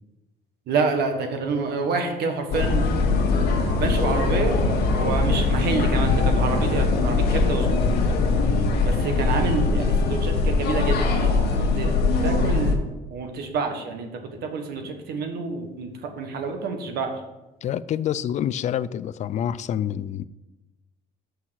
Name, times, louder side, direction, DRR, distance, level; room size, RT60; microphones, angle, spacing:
voice 1, 0.7-3.0 3.8-4.6 4.9-7.9 8.8-11.9 12.2-12.8 13.1-14.1 14.4-17.1, right 4 dB, 70° right, 5 dB, 1.4 m, -28 dB
sound 1, 2.5-12.7, left 3 dB, 70° left, 1.4 m, -21 dB
voice 2, 17.6-20.2, left 10 dB, 45° left, 16 dB, 0.4 m, -27 dB
6.3 x 5.7 x 6.4 m, 1.0 s
cardioid pair, 110°, 17 cm